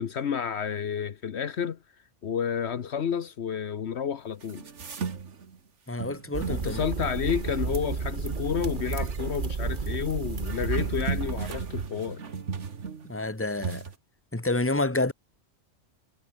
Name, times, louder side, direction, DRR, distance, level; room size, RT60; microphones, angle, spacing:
voice 1, 0.0-1.8 2.2-4.7 6.5-12.2, left 7 dB, 70° left, 1.2 m, -30 dB
sound 1, 4.4-5.6 6.0-7.9 8.3-9.2 10.3-13.3 13.6-13.9, right 6 dB, 90° right, 1.9 m, -37 dB
voice 2, 5.9-6.8 13.1-13.8 14.3-15.1, left 2 dB, 10° left, 1.7 m, -28 dB
sound 2, 6.3-11.9, right 5 dB, 45° right, 1.5 m, -32 dB
omnidirectional pair, 1.2 m